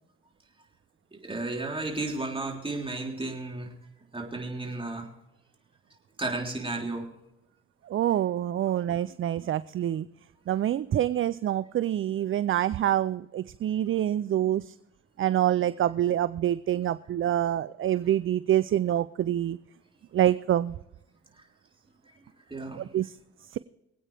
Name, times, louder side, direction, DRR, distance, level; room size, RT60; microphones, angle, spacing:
voice 1, 1.2-3.7 4.1-5.1 6.2-7.1 8.7-8.8 21.3-21.4 22.0-22.9, right 2 dB, 15° right, 0 dB, 3.6 m, -33 dB
voice 2, 7.9-10.1 10.5-14.7 15.2-19.6 20.1-20.8 22.8-23.1 23.5-23.6, right 11 dB, 45° right, 16 dB, 0.4 m, -26 dB
24.5 x 8.8 x 3.4 m, 0.88 s
cardioid pair, 90°, 30 cm